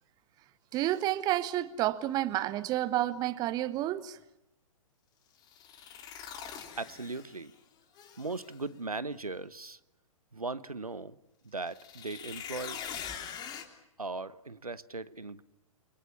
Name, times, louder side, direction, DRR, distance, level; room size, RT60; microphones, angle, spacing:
sound 1, 0.7-1.0 5.4-7.5 8.0-8.6 11.6-13.6, left 8 dB, 20° left, 3.2 m, -43 dB
voice 1, 0.7-4.2, right 14 dB, 20° right, 1.0 m, -30 dB
voice 2, 6.8-7.5 8.2-9.8 10.3-11.2 11.4-12.8 14.0-15.4, right 3 dB, 80° right, 1.1 m, -38 dB
29.5 x 24.0 x 7.2 m
figure-of-eight pair, 115°, 18 cm